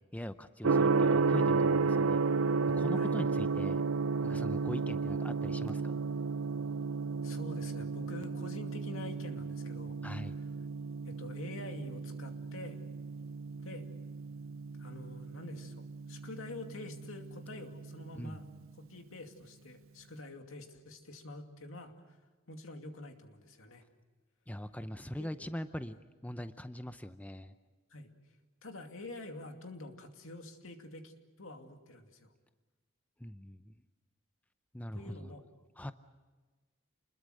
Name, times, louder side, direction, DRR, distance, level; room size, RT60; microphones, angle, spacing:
voice 1, 0.1-2.2 2.7-3.8 4.2-6.0 10.0-10.3 18.1-18.4 24.5-26.0 26.2-27.5 33.2-33.7 34.7-35.3 35.8-35.9, equal, 5° left, 10 dB, 0.6 m, -41 dB
Gong, 0.6-18.5, right 4 dB, 75° right, 0.7 m, -33 dB
voice 2, 7.2-10.0 11.0-12.8 13.6-13.8 14.8-18.4 18.8-22.2 22.5-23.8 25.2-25.3 27.9-28.1 28.6-31.1 31.4-32.3 34.9-35.4, left 2 dB, 75° left, 4 dB, 2.5 m, -47 dB
28.5 x 21.5 x 6.5 m, 1.3 s
head